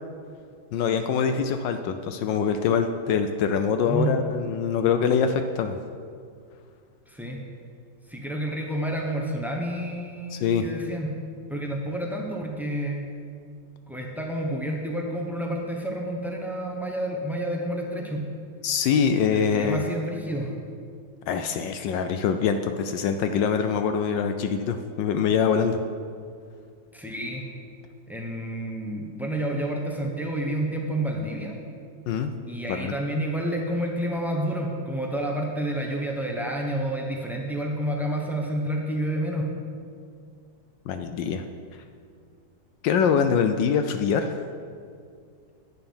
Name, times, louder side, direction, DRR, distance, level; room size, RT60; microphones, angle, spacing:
voice 1, 0.7-5.8 10.3-10.7 18.6-19.8 21.3-25.8 32.1-32.3 32.7-32.9 40.9-41.4 42.8-44.4, left 6 dB, 75° left, 8 dB, 1.1 m, -24 dB
voice 2, 3.8-4.1 7.1-7.4 8.1-11.1 11.5-13.1 13.9-18.2 19.3-20.5 26.9-27.4 28.1-31.6 32.5-39.5, right 1 dB, 5° right, 0 dB, 0.3 m, -29 dB
10.0 x 8.8 x 5.5 m, 2.2 s
omnidirectional pair, 2.2 m